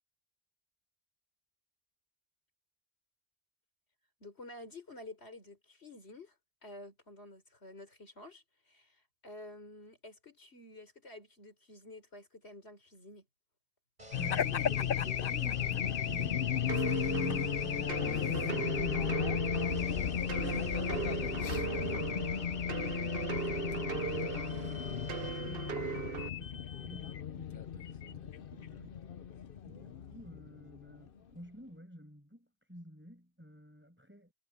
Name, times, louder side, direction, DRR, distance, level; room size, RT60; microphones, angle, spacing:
voice 1, 4.2-6.3 6.6-13.3 29.7-30.0, left 2 dB, 75° left, 4.8 m, -51 dB
sound 1, 14.0-25.3, right 1 dB, 40° right, 7.2 m, -49 dB
Race car auto racing / Alarm, 14.1-31.1, left 9 dB, 60° left, 0.9 m, -34 dB
voice 2, 14.1-29.3 29.7-34.3, equal, 10° right, 7.5 m, -50 dB
sound 2, 16.7-26.3, right 8 dB, 65° right, 1.0 m, -39 dB
omnidirectional pair, 1.1 m